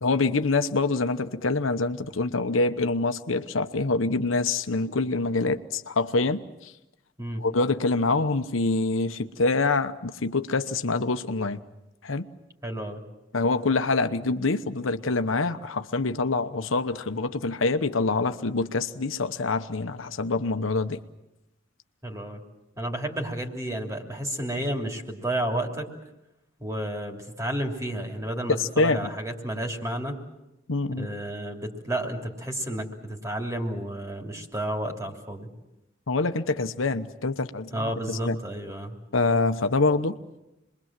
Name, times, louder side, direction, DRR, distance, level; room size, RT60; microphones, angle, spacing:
voice 1, 0.0-6.7 7.4-11.6 12.0-12.3 13.3-21.0 28.5-29.1 30.7-31.1 36.1-38.4 39.1-40.2, left 3 dB, 90° left, 1.0 m, -25 dB
voice 2, 12.6-13.0 22.0-22.4 22.8-25.9 26.6-30.2 31.0-35.5 37.7-39.0, right 1 dB, 15° right, 3.0 m, -31 dB
27.0 x 22.0 x 7.5 m
head